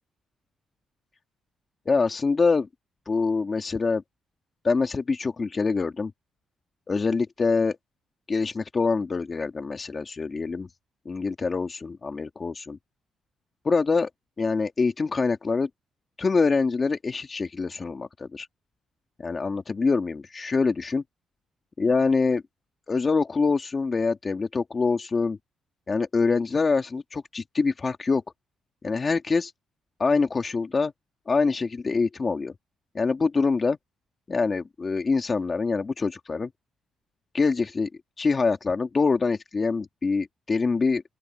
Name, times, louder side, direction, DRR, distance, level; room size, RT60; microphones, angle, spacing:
voice 1, 1.9-2.7 3.1-4.0 4.6-6.1 6.9-7.8 8.3-10.7 11.1-12.8 13.6-14.1 14.4-15.7 16.2-18.5 19.2-21.0 21.8-22.4 22.9-25.4 25.9-28.2 28.8-29.5 30.0-30.9 31.3-32.5 32.9-33.8 34.3-36.5 37.3-37.9 38.2-41.0, left 4 dB, 30° left, 1.8 m, -25 dB
open air
cardioid pair, 110°, 0 cm